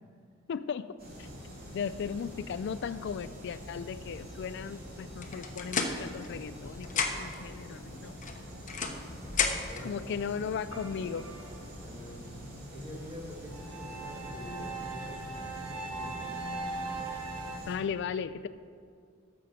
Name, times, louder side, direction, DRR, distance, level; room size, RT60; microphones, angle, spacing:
voice 1, 0.5-1.3 1.7-8.1 9.8-11.3 17.7-18.5, left 6 dB, 60° left, 13 dB, 0.3 m, -36 dB
sound 1, 1.0-17.8, equal, 50° right, 3.0 m, -45 dB
sound 2, 5.2-6.6 6.8-7.4 8.2-9.9, left 5 dB, 40° left, 0.9 m, -32 dB
voice 2, 9.7-10.1 11.8-16.4, equal, 20° right, -2 dB, 2.1 m, -46 dB
sound 3, 10.7-12.1 13.5-17.6, right 3 dB, 80° right, 1.1 m, -40 dB
13.5 x 6.4 x 5.7 m, 2.2 s
head